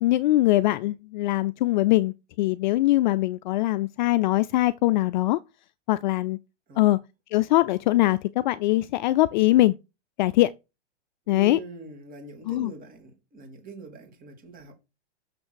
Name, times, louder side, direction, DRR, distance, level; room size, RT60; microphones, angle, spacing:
voice 1, 0.0-5.4 5.9-6.4 6.8-7.0 7.3-9.8 10.2-10.5 11.3-11.6 12.5-12.7, left 17 dB, 45° left, 0.4 m, -22 dB
voice 2, 11.3-14.7, right 3 dB, 25° right, 2.9 m, -43 dB
6.6 x 6.1 x 6.3 m
hypercardioid pair, 140°, 35 cm